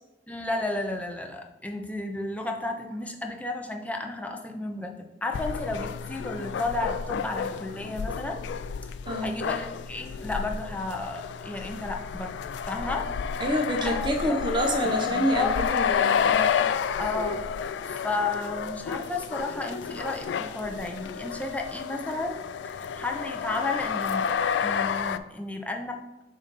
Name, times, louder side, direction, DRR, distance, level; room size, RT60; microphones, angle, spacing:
voice 1, 0.3-4.9 5.2-8.4 9.2-12.4 12.7-13.4 13.8-14.4 14.8-15.5 17.0-22.4 22.6-24.3 24.6-26.0, left 2 dB, 10° left, 2 dB, 0.6 m, -33 dB
sound 1, 5.3-25.2, left 7 dB, 80° left, 0.3 m, -30 dB
voice 2, 9.1-9.4 13.4-16.7, equal, 25° right, 3 dB, 0.8 m, -28 dB
6.9 x 2.6 x 5.2 m, 1.0 s
head